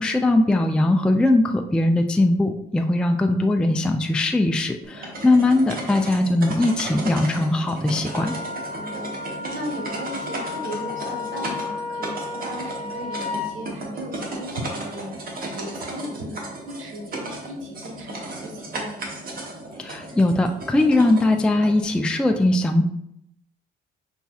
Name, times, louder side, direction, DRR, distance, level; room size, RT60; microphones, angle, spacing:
voice 1, 0.0-8.3 19.8-22.8, left 2 dB, 5° left, 5 dB, 0.3 m, -20 dB
sound 1, 4.8-21.8, right 2 dB, 50° right, 1.0 m, -35 dB
Wind instrument woodwind instrument, 8.1-13.6, left 4 dB, 35° left, 0.9 m, -33 dB
voice 2, 8.7-19.1, equal, 90° right, 0 dB, 1.2 m, -36 dB
5.8 x 2.7 x 2.3 m, 0.75 s
cardioid pair, 90°, 20 cm